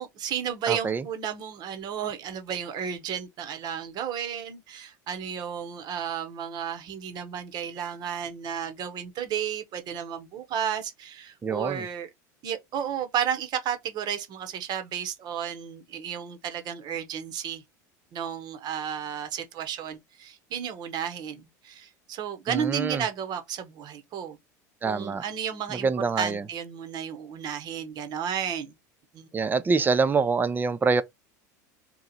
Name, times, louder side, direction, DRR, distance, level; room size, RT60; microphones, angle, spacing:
voice 1, 0.0-12.1 12.4-17.6 18.1-24.4 24.8-25.9 26.2-28.7 29.1-29.3, right 8 dB, 45° right, 1.0 m, -33 dB
voice 2, 0.7-1.1 11.4-11.9 22.5-23.0 24.8-25.2 25.7-26.4 29.3-31.0, right 4 dB, 20° right, 0.5 m, -25 dB
3.0 x 2.4 x 3.9 m
hypercardioid pair, 95°, 10 cm